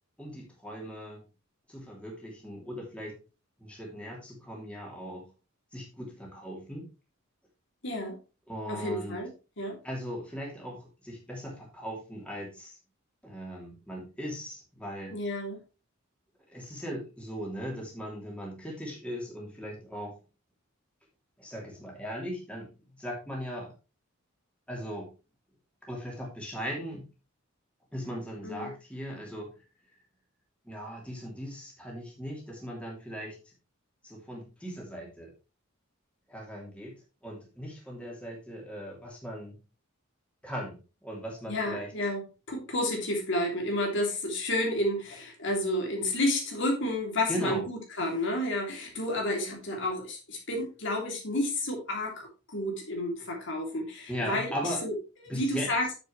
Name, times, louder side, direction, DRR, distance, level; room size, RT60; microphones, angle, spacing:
voice 1, 0.2-1.2 1.7-3.2 3.6-5.3 5.7-6.8 8.5-9.2 9.8-12.8 13.2-15.2 16.5-20.2 21.4-22.7 23.0-23.7 24.7-25.1 25.8-27.1 27.9-29.5 30.6-33.5 34.0-35.3 36.3-39.6 40.4-41.9 47.3-47.6 54.1-54.8 55.3-55.7, equal, 5° left, -2 dB, 3.0 m, -38 dB
voice 2, 7.8-8.2 8.7-9.3 9.6-9.8 15.1-15.6 28.4-28.7 41.5-42.2 42.5-54.5 54.8-54.9 55.3-55.9, left 1 dB, 60° left, 0 dB, 3.0 m, -30 dB
9.2 x 7.7 x 3.2 m, 0.31 s
head